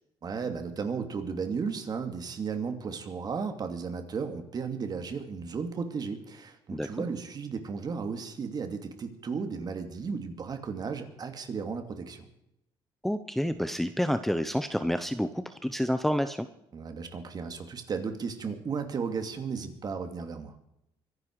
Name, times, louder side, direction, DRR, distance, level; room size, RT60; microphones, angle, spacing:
voice 1, 0.2-12.3 16.7-20.6, right 5 dB, 40° right, 7 dB, 2.7 m, -34 dB
voice 2, 13.0-16.5, equal, ahead, 9 dB, 0.8 m, -29 dB
24.0 x 11.0 x 4.8 m, 0.80 s
cardioid pair, 110°, 10 cm